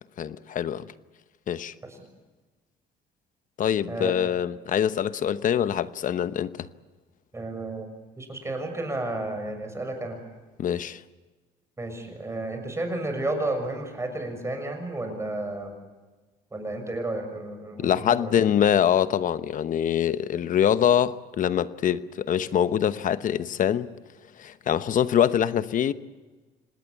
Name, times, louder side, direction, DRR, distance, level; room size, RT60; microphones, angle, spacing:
voice 1, 0.2-0.8 1.5-1.7 3.6-6.7 10.6-11.0 17.8-23.9 24.4-25.9, left 9 dB, 50° left, 1.0 m, -24 dB
voice 2, 7.3-7.9 8.2-10.2 11.8-15.7 16.5-18.3, right 2 dB, 15° right, 6.6 m, -32 dB
26.5 x 19.5 x 8.3 m
cardioid pair, 110°, 17 cm